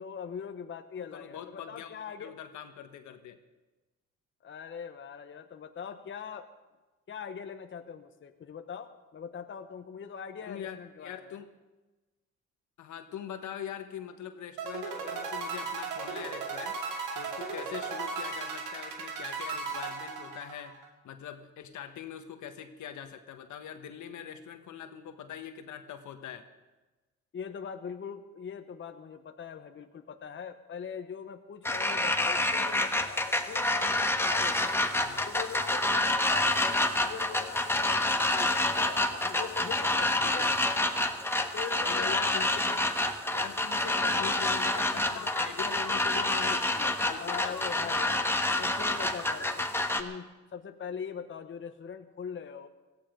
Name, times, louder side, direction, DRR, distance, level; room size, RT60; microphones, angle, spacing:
voice 1, 0.0-2.3 4.4-6.4 7.1-11.4 27.3-34.8 35.2-40.6 41.5-42.4 42.7-42.9 43.8-44.4 44.7-45.3 46.5-48.3 48.6-52.7, left 7 dB, 40° left, 7 dB, 1.0 m, -42 dB
voice 2, 1.0-3.4 10.4-11.5 12.8-16.8 17.1-20.8 21.0-26.5 35.0-35.3 40.2-40.5 41.8-42.7 43.3-46.6 47.0-48.0, left 9 dB, 75° left, 8 dB, 1.5 m, -42 dB
sound 1, 14.6-20.9, right 4 dB, 90° right, 2.4 m, -36 dB
sound 2, 31.6-50.0, left 1 dB, 10° left, 1.3 m, -28 dB
17.5 x 15.0 x 5.2 m, 1.2 s
cardioid pair, 90°, 30 cm